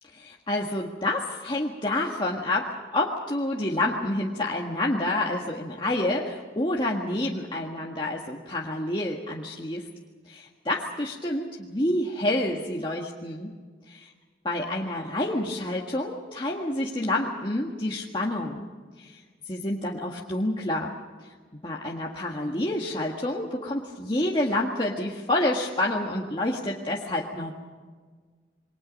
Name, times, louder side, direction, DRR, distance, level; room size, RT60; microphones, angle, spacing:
voice 1, 0.2-9.9 10.3-13.5 13.9-14.0 14.5-18.7 19.0-20.9 21.2-21.3 21.6-27.5, left 1 dB, 25° left, -2 dB, 1.7 m, -28 dB
28.0 x 23.5 x 5.4 m, 1.5 s
head